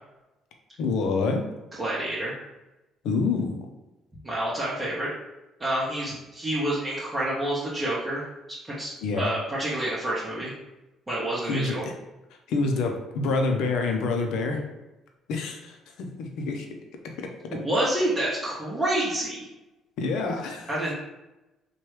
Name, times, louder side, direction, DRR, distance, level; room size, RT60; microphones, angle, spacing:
voice 1, 0.8-1.4 3.0-3.7 9.0-9.3 11.5-12.0 12.5-14.6 15.3-16.7 20.0-20.7, left 3 dB, 75° left, 3 dB, 0.5 m, -27 dB
voice 2, 1.8-2.3 4.2-5.1 5.6-8.3 8.8-10.5 11.1-11.8 17.5-19.5 20.7-20.9, right 1 dB, 20° right, -7 dB, 0.8 m, -28 dB
3.0 x 2.2 x 3.2 m, 1.0 s
supercardioid pair, 80°, 0 cm